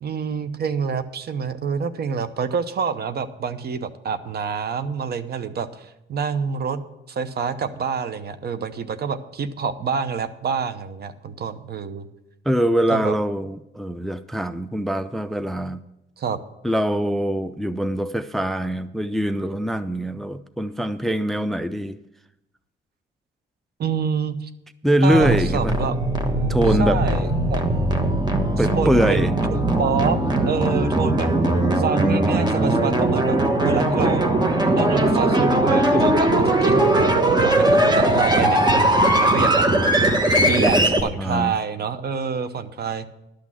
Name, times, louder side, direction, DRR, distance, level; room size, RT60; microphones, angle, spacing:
voice 1, 0.0-12.1 12.9-13.1 16.2-16.4 23.8-24.5 25.0-26.0 26.8-27.6 28.8-29.2 29.5-30.2 30.5-31.3 31.7-33.4 33.6-34.3 34.7-39.6 40.4-43.1, right 6 dB, 55° right, 12 dB, 0.8 m, -27 dB
voice 2, 12.5-15.8 16.6-22.0 24.8-25.7 26.5-27.0 28.6-29.3 30.9-31.1 40.5-40.9 41.2-41.5, right 1 dB, ahead, 13 dB, 0.4 m, -23 dB
sound 1, 25.1-41.0, right 1 dB, 20° right, 1.2 m, -19 dB
11.5 x 6.2 x 7.4 m, 0.89 s
cardioid pair, 90°, 20 cm